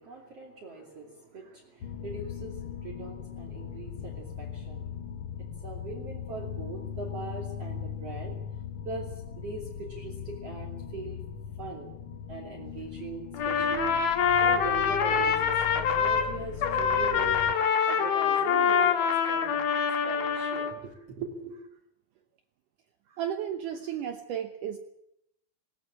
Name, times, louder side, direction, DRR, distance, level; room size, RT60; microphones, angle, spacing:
voice 1, 0.0-4.9 5.6-8.4 8.9-11.2 11.6-11.9 12.3-17.4 17.9-19.6 20.0-21.6, right 3 dB, 40° right, -1 dB, 3.5 m, -40 dB
sound 1, 1.8-17.5, left 8 dB, 90° left, 1.2 m, -39 dB
Trumpet, 13.3-16.3 16.6-20.7, left 7 dB, 75° left, 3.5 m, -25 dB
voice 2, 23.1-24.8, right 9 dB, 70° right, 7 dB, 2.2 m, -33 dB
19.5 x 18.0 x 8.8 m, 0.80 s
omnidirectional pair, 4.4 m